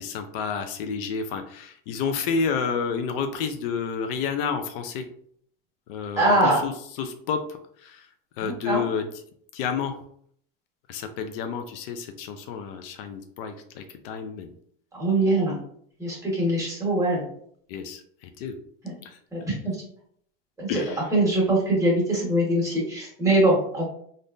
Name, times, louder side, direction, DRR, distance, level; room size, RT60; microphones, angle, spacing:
voice 1, 0.0-5.0 5.9-6.7 7.0-7.4 7.8-8.1 8.4-9.1 9.5-10.0 10.9-14.5 17.7-18.0 18.4-18.6 19.1-19.2 20.7-21.0, left 6 dB, 70° left, 7 dB, 0.5 m, -30 dB
voice 2, 6.2-6.6 8.4-8.8 14.9-15.6 16.0-17.3 18.8-19.0 19.3-19.7 20.6-20.8 21.1-23.8, right 1 dB, 10° right, -4 dB, 1.5 m, -22 dB
3.5 x 2.5 x 2.6 m, 0.64 s
supercardioid pair, 130°, 29 cm